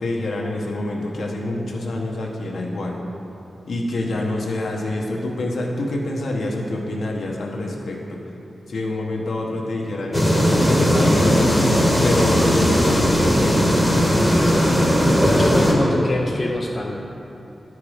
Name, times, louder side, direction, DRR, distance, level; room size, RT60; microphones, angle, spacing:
voice 1, 0.0-3.0 3.7-8.2 8.7-14.4, left 1 dB, 65° left, 0 dB, 1.0 m, -26 dB
sound 1, 10.1-15.7, equal, 5° left, 1.1 m, -17 dB
voice 2, 15.1-17.0, left 1 dB, 25° left, -1 dB, 0.5 m, -24 dB
11.0 x 4.7 x 4.9 m, 2.9 s
wide cardioid pair, 180°, 0 cm